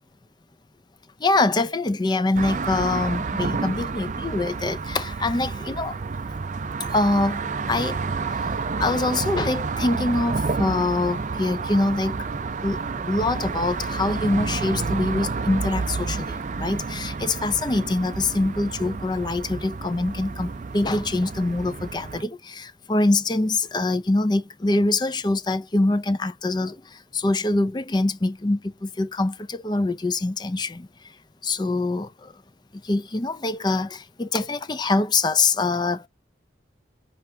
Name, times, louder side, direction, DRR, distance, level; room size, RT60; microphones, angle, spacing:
voice 1, 1.2-5.9 6.8-7.4 7.7-8.0 8.3-12.3 12.6-31.1 31.4-32.3 32.8-36.1, left 2 dB, 20° left, 0.4 m, -24 dB
sound 1, 2.4-22.2, right 4 dB, 40° right, 0.4 m, -30 dB
5.5 x 3.3 x 2.7 m
head